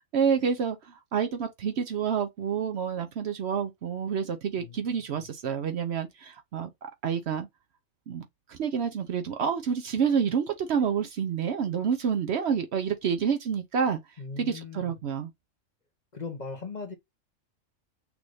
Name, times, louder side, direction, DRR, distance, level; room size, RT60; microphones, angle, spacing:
voice 1, 0.1-7.5 8.1-14.0 14.4-15.3, right 7 dB, 65° right, 0.8 m, -28 dB
voice 2, 4.6-5.2 14.2-15.0 16.1-16.9, left 4 dB, 40° left, 0.9 m, -39 dB
6.1 x 2.5 x 3.2 m
omnidirectional pair, 1.3 m